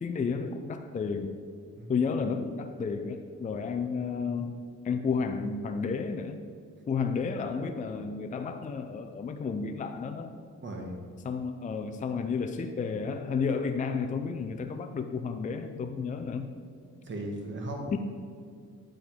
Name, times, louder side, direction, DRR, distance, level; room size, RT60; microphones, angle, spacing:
voice 1, 0.0-1.3 1.9-6.4 6.9-10.3 11.2-16.5 17.9-18.0, left 5 dB, 25° left, 6 dB, 0.5 m, -32 dB
voice 2, 10.6-11.0 16.8-18.0, right 1 dB, 40° right, 1 dB, 1.8 m, -37 dB
10.0 x 3.8 x 6.2 m, 2.1 s
cardioid pair, 90°, 30 cm